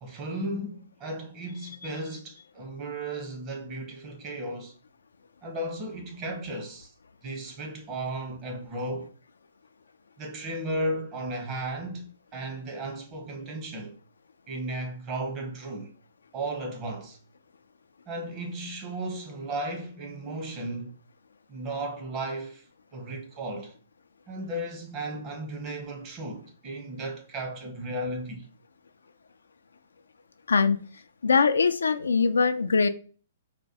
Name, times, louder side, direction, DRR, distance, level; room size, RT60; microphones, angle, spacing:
voice 1, 0.0-4.7 5.4-6.9 7.2-9.1 10.2-13.9 14.5-15.9 16.3-17.2 18.1-21.0 21.5-22.6 22.9-23.8 24.3-28.5, right 1 dB, 30° right, 1.0 m, -35 dB
voice 2, 31.2-32.9, left 5 dB, 85° left, 0.3 m, -22 dB
4.0 x 2.2 x 2.8 m
hypercardioid pair, 130°, 0 cm